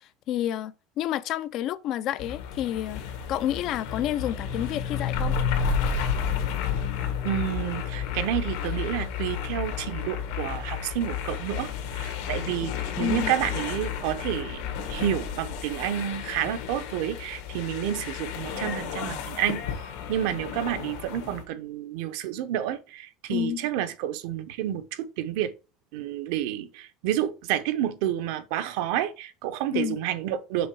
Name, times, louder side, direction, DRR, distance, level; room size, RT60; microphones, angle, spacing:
voice 1, 0.3-3.0 3.3-5.3 13.0-13.3 23.3-23.7 29.7-30.0, left 11 dB, 40° left, 0.4 m, -29 dB
sound 1, 2.2-21.4, left 7 dB, 80° left, 1.6 m, -31 dB
voice 2, 7.2-19.6 20.1-25.5 25.9-30.7, right 11 dB, 65° right, 0.7 m, -30 dB
6.3 x 3.8 x 4.6 m
cardioid pair, 175°, 0 cm